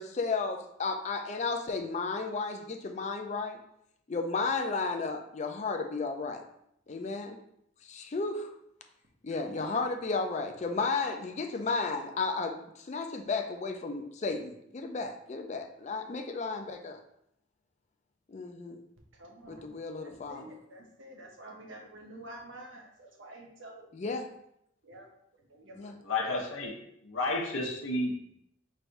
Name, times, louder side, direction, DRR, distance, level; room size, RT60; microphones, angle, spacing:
voice 1, 0.0-3.6 4.1-6.4 6.9-7.4 7.8-8.5 9.2-17.0 18.3-18.8 19.5-20.5 23.9-24.3 25.8-25.9, left 4 dB, 35° left, 5 dB, 0.4 m, -33 dB
voice 2, 9.4-9.8 19.2-19.7 20.0-24.1 24.8-25.1 25.5-26.0, right 1 dB, 70° right, 0 dB, 0.8 m, -48 dB
voice 3, 26.0-26.7 27.0-28.3, left 2 dB, 90° left, 0 dB, 0.9 m, -31 dB
3.2 x 2.6 x 4.5 m, 0.76 s
head